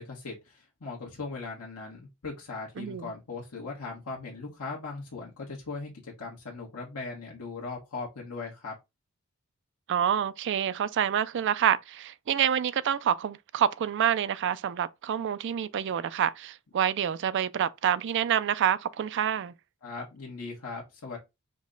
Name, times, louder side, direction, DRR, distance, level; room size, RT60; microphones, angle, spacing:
voice 1, 0.0-8.7 19.8-21.2, left 3 dB, 80° left, 1.2 m, -39 dB
voice 2, 2.8-3.1 9.9-19.5, right 9 dB, 55° right, 0.3 m, -27 dB
5.1 x 2.1 x 3.7 m
head